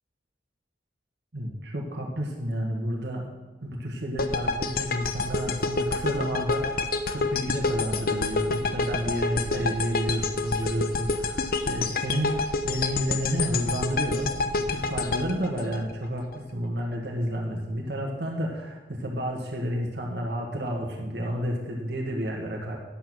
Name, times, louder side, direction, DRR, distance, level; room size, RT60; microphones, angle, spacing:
voice 1, 1.3-3.3 3.6-22.8, equal, 65° right, -1 dB, 1.7 m, -31 dB
sound 1, 4.2-16.4, left 3 dB, 50° left, 0.8 m, -28 dB
10.0 x 8.5 x 6.3 m, 1.2 s
head